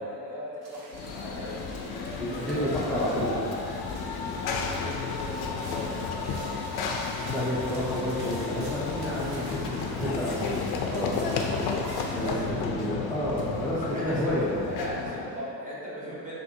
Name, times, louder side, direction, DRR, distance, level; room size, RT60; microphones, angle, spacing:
voice 1, 0.0-1.7 2.5-3.5 3.9-6.5 9.2-9.4 12.2-12.4 13.8-14.3 14.7-16.4, equal, 20° right, -8 dB, 1.1 m, -38 dB
sound 1, 0.6-12.3, right 1 dB, 75° right, 1.3 m, -46 dB
Run / Train, 0.9-15.4, left 5 dB, 80° left, 0.5 m, -32 dB
voice 2, 2.2-3.4 7.3-11.3 12.1-14.6, equal, 5° left, -11 dB, 0.5 m, -30 dB
6.2 x 2.5 x 2.8 m, 2.7 s
cardioid pair, 140°, 38 cm